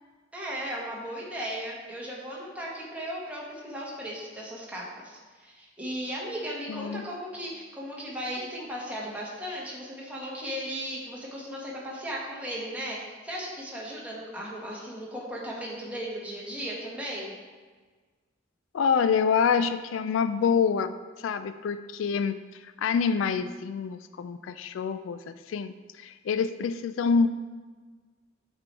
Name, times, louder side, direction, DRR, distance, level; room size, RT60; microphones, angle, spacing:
voice 1, 0.3-17.3, equal, 5° right, -5 dB, 1.6 m, -36 dB
voice 2, 6.7-7.0 18.7-20.9 21.2-22.4 22.6-27.3, left 6 dB, 80° left, 11 dB, 0.3 m, -26 dB
7.7 x 4.5 x 4.6 m, 1.4 s
head